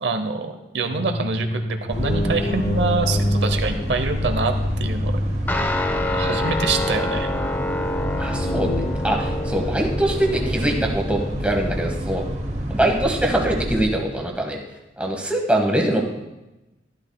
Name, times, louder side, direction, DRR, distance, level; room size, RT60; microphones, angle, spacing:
voice 1, 0.0-1.6 1.9-5.2 6.1-7.3, right 3 dB, 75° right, 6 dB, 0.8 m, -25 dB
sound 1, 0.9-7.0 8.3-8.9, left 1 dB, 55° left, 0.9 m, -27 dB
sound 2, 1.9-13.8, equal, 40° right, 1.0 m, -29 dB
Guitar, 5.5-14.3, left 1 dB, 10° left, 0.5 m, -28 dB
voice 2, 8.2-8.7 9.0-12.2 12.7-14.6 15.0-16.0, right 1 dB, 5° right, 1 dB, 1.1 m, -23 dB
12.0 x 12.0 x 2.3 m, 1.0 s
head